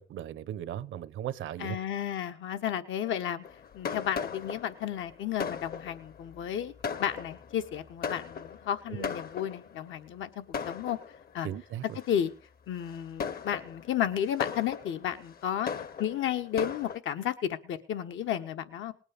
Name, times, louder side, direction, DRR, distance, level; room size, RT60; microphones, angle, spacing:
voice 1, 0.0-1.8 8.9-9.1 11.4-12.0, right 11 dB, 80° right, 1.0 m, -37 dB
voice 2, 1.6-3.4 3.7-6.7 7.0-11.0 11.3-11.5 12.1-12.3 12.7-15.7 16.0-18.9, left 10 dB, 80° left, 1.4 m, -32 dB
Fireworks, 3.4-9.9 10.5-11.4 12.0-12.3 12.8-17.0, left 6 dB, 50° left, 1.0 m, -38 dB
19.5 x 8.9 x 5.2 m
cardioid pair, 90°, 20 cm